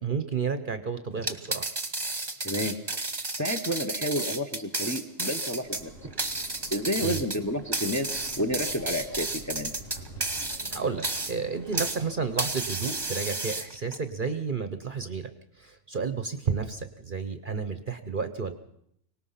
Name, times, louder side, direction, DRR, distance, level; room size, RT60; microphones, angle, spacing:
voice 1, 0.0-1.6 7.0-7.2 10.7-15.3 15.6-18.5, right 5 dB, 40° right, 9 dB, 1.0 m, -31 dB
sound 1, 1.2-12.0 12.4-14.0, right 2 dB, 20° right, 1.2 m, -32 dB
voice 2, 2.4-2.7 3.4-6.1 6.7-9.7, equal, 15° left, 4 dB, 1.0 m, -30 dB
sound 2, 5.6-13.2, right 1 dB, 70° left, 3.9 m, -47 dB
24.0 x 18.5 x 5.8 m, 0.73 s
omnidirectional pair, 1.4 m